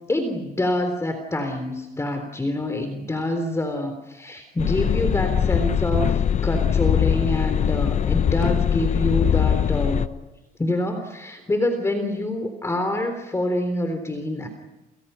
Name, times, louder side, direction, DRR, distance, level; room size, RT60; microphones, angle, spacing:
voice 1, 0.1-10.1 10.6-14.5, left 1 dB, 15° left, 7 dB, 3.7 m, -26 dB
sound 1, 4.6-10.1, left 8 dB, 45° left, 1.0 m, -21 dB
30.0 x 28.5 x 5.7 m, 1.0 s
cardioid pair, 110°, 17 cm